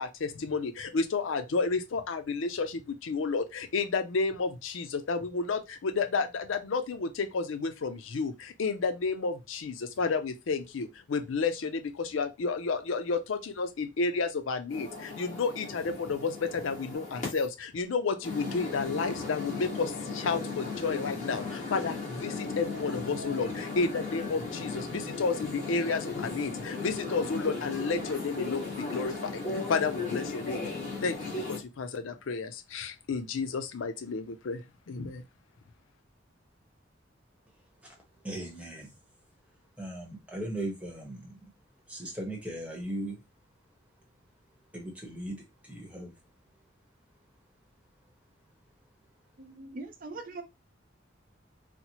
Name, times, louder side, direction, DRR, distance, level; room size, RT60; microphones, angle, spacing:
voice 1, 0.0-29.4 29.7-30.6 31.0-35.2, left 4 dB, 85° left, 0.5 m, -31 dB
sound 1, 14.7-17.5 18.2-31.6, left 3 dB, 40° left, 1.4 m, -36 dB
voice 2, 38.2-38.9 39.8-41.3 41.9-43.2 44.7-46.1, right 1 dB, 5° right, 0.9 m, -38 dB
voice 3, 49.4-50.4, right 3 dB, 45° right, 0.4 m, -41 dB
4.1 x 2.0 x 2.9 m
head